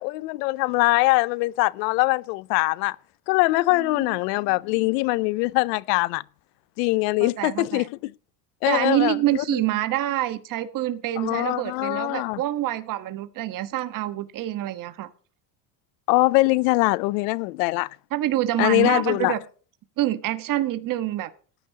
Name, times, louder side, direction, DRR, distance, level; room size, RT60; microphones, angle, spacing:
voice 1, 0.0-3.0 3.3-6.2 6.8-8.1 8.6-9.4 11.2-12.4 16.1-17.9 18.6-19.4, left 22 dB, 80° left, 0.6 m, -22 dB
voice 2, 7.2-7.9 8.7-15.1 18.1-19.4 20.0-21.3, right 14 dB, 40° right, 1.3 m, -26 dB
18.5 x 10.0 x 2.8 m
cardioid pair, 140°, 49 cm